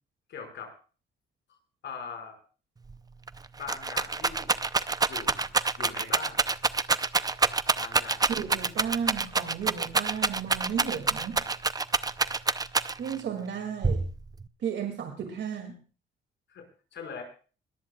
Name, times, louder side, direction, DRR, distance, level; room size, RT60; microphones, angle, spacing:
voice 1, 0.3-0.7 1.8-2.4 3.6-4.5 5.1-5.5 5.8-6.5 7.8-8.3 16.5-16.6 16.9-17.2, left 6 dB, 65° left, 3 dB, 5.3 m, -41 dB
Rattle, 2.9-3.0 3.3-13.2 13.8-14.5, right 4 dB, 20° right, 0.6 m, -27 dB
voice 2, 8.3-11.4 13.0-14.0 14.6-15.7, right 7 dB, 65° right, 4 dB, 2.4 m, -34 dB
22.0 x 17.5 x 2.3 m, 0.37 s
cardioid pair, 90°, 20 cm